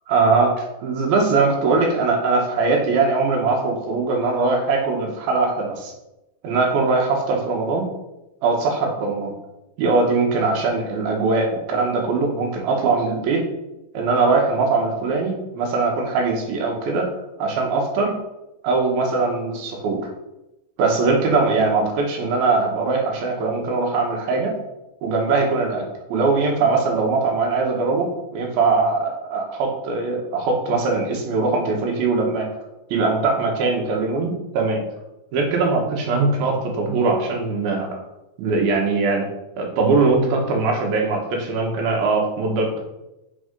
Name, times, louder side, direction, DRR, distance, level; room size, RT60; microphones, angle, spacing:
voice 1, 0.1-5.9 6.4-7.9 8.4-9.3 9.8-13.4 13.9-17.1 17.4-18.1 18.6-20.0 20.8-24.5 25.0-25.8 26.1-28.1 28.3-32.5 32.9-34.8 35.3-37.9 38.4-39.3 39.6-42.8, right 3 dB, 85° right, 1 dB, 3.2 m, -21 dB
6.0 x 4.7 x 5.1 m, 0.95 s
omnidirectional pair, 4.2 m